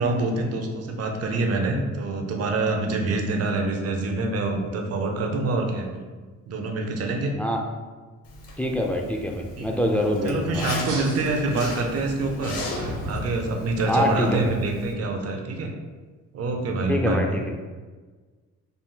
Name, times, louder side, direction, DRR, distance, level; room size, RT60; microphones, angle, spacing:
voice 1, 0.0-6.1 6.5-7.3 9.6-9.7 10.2-12.6 13.1-15.7 16.3-17.3, right 2 dB, 55° right, 3 dB, 0.7 m, -26 dB
Zipper (clothing), 8.2-14.9, left 2 dB, 55° left, 0.9 m, -37 dB
voice 2, 8.6-10.7 13.9-14.5 16.9-17.5, left 1 dB, 5° left, 1 dB, 0.4 m, -25 dB
sound 1, 10.8-14.0, equal, 80° right, 0.9 m, -36 dB
3.9 x 2.1 x 3.8 m, 1.4 s
cardioid pair, 90°, 30 cm